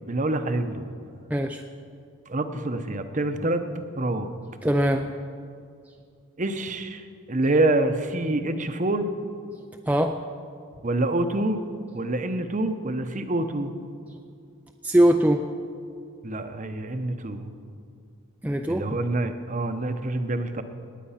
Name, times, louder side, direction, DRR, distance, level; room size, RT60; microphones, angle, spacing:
voice 1, 0.1-0.8 2.3-3.6 4.0-4.3 6.4-7.0 7.3-9.1 10.8-11.6 11.9-13.7 16.2-17.5 18.7-20.6, right 2 dB, 35° right, 9 dB, 0.7 m, -26 dB
voice 2, 1.3-1.6 4.6-5.1 9.9-10.2 14.8-15.4 18.4-18.9, right 1 dB, 5° right, 4 dB, 0.3 m, -21 dB
18.5 x 9.2 x 5.7 m, 2.3 s
head